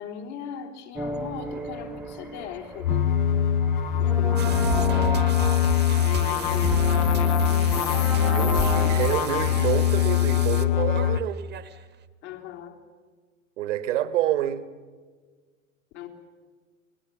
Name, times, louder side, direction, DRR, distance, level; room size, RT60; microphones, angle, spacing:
voice 1, 0.0-3.1 3.9-5.1 6.0-6.8 8.5-9.0 12.2-12.8 15.9-16.1, left 9 dB, 55° left, 3.6 m, -38 dB
sound 1, 1.0-11.1, right 2 dB, 5° right, 1.2 m, -34 dB
sound 2, 2.8-11.2, left 10 dB, 40° left, 0.7 m, -22 dB
sound 3, 4.4-11.7, right 10 dB, 25° right, 1.3 m, -34 dB
voice 2, 8.3-11.5 13.6-14.6, right 11 dB, 60° right, 1.5 m, -28 dB
28.5 x 20.5 x 7.3 m
figure-of-eight pair, 95°, 41 cm